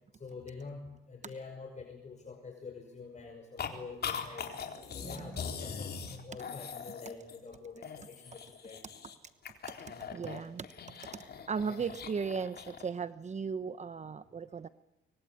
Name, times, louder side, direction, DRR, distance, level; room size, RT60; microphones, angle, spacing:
voice 1, 0.2-4.5 4.9-9.0, left 4 dB, 35° left, 4 dB, 5.7 m, -46 dB
sound 1, 3.6-3.7 4.0-7.5 7.8-9.2 9.4-12.9, left 6 dB, 55° left, 3.9 m, -41 dB
voice 2, 5.0-5.4 10.1-10.7 11.5-14.7, right 5 dB, 35° right, 13 dB, 1.0 m, -36 dB
26.5 x 24.0 x 8.7 m, 0.89 s
cardioid pair, 90°, 20 cm